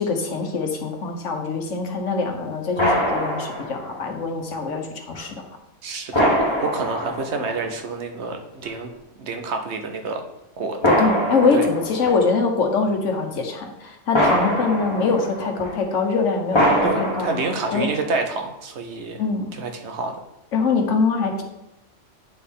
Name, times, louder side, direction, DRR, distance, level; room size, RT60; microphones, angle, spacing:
voice 1, 0.0-5.4 10.8-17.4 17.7-17.9 19.2-19.6 20.5-21.4, left 4 dB, 80° left, 4 dB, 1.3 m, -23 dB
sound 1, 2.8-4.0 5.1-5.2 6.1-7.8 8.7-8.8 10.8-12.3 14.1-15.8 16.5-18.0, equal, 20° left, 1.4 m, -23 dB
voice 2, 5.8-6.3 6.6-8.9 9.2-10.2 10.6-11.0 11.5-11.6 16.8-19.2 19.6-20.1, right 4 dB, 65° right, 5 dB, 1.1 m, -28 dB
9.1 x 4.4 x 3.6 m, 0.91 s
omnidirectional pair, 1.3 m